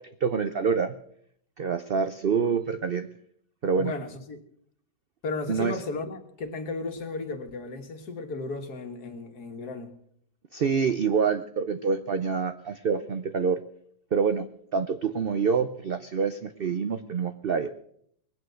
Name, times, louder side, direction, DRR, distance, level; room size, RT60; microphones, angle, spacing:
voice 1, 0.2-1.0 1.6-3.1 3.6-3.9 5.5-5.8 10.5-13.6 14.1-14.5 14.7-17.7, right 5 dB, 70° right, 0.5 m, -26 dB
voice 2, 3.8-4.4 5.2-10.0, left 3 dB, 65° left, 1.9 m, -35 dB
20.5 x 9.2 x 6.3 m
omnidirectional pair, 1.8 m